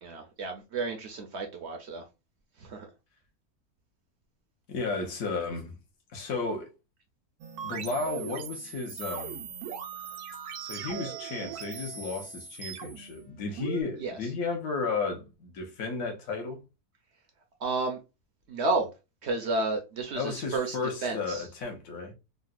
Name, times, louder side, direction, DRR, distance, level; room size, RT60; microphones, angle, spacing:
voice 1, 0.0-2.0 2.6-2.9 14.0-14.2 17.6-18.0 18.5-18.9 19.2-20.8 21.0-21.5, right 3 dB, 65° right, 0.7 m, -31 dB
voice 2, 4.7-5.8 6.1-6.7 7.6-9.5 10.6-16.6 20.1-22.1, left 4 dB, 65° left, 1.3 m, -33 dB
sound 1, 7.4-13.8, right 7 dB, 90° right, 1.1 m, -40 dB
3.8 x 2.1 x 2.4 m
omnidirectional pair, 1.6 m